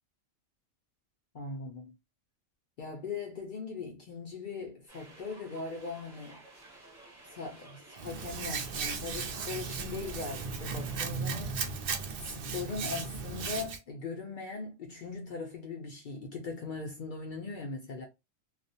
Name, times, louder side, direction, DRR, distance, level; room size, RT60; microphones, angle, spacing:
voice 1, 1.3-1.9 2.8-6.4 7.3-11.9 12.2-18.1, left 4 dB, 60° left, 0.5 m, -40 dB
sound 1, 4.9-11.1, right 2 dB, 20° right, 0.8 m, -53 dB
Hands, 8.0-13.8, right 5 dB, 60° right, 0.6 m, -36 dB
2.3 x 2.0 x 2.6 m
omnidirectional pair, 1.3 m